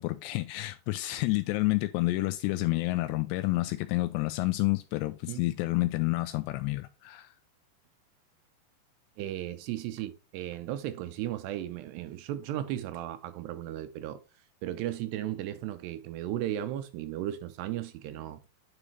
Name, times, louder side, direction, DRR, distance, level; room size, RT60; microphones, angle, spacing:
voice 1, 0.0-7.3, left 20 dB, 85° left, 2.7 m, -29 dB
voice 2, 9.2-14.2 14.6-18.4, right 12 dB, 80° right, 2.7 m, -35 dB
9.8 x 5.1 x 3.1 m
omnidirectional pair, 5.0 m